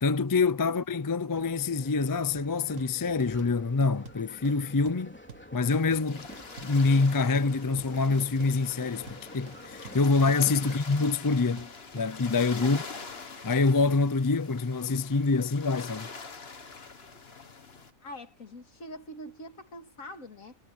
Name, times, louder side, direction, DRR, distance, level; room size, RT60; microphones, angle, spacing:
voice 1, 0.0-5.2 5.5-6.2 6.6-12.8 13.4-16.1, left 4 dB, 30° left, 0.4 m, -26 dB
sound 1, 1.3-10.8, equal, 10° left, 3.5 m, -48 dB
sound 2, 2.3-12.1, right 6 dB, 65° right, 1.8 m, -49 dB
sound 3, 5.7-17.9, left 4 dB, 45° left, 1.9 m, -45 dB
voice 2, 18.0-20.6, left 1 dB, 70° left, 2.7 m, -44 dB
omnidirectional pair, 1.4 m